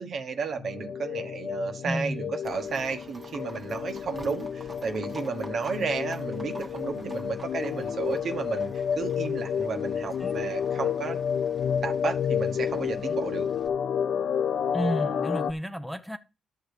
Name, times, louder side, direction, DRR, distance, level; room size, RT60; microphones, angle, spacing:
voice 1, 0.0-8.7 9.0-11.2 11.8-13.5, right 5 dB, 55° right, 1.3 m, -32 dB
sound 1, 0.6-15.5, left 8 dB, 65° left, 0.5 m, -30 dB
voice 2, 1.8-2.3 10.2-10.3 14.7-16.2, equal, ahead, 0.8 m, -31 dB
Livestock farm animals working animals, 2.4-13.7, right 2 dB, 25° right, 1.4 m, -49 dB
11.0 x 6.6 x 4.9 m
cardioid pair, 90°, 0 cm